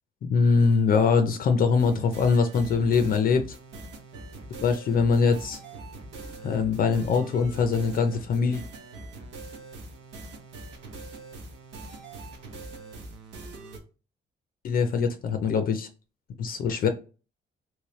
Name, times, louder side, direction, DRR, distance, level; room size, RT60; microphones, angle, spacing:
voice 1, 0.2-3.6 4.6-5.6 6.4-8.6 14.6-15.9 16.4-16.9, left 5 dB, 55° left, 0.5 m, -23 dB
sound 1, 1.8-13.8, right 2 dB, 90° right, 1.0 m, -42 dB
3.2 x 3.1 x 3.0 m
cardioid pair, 120°, 18 cm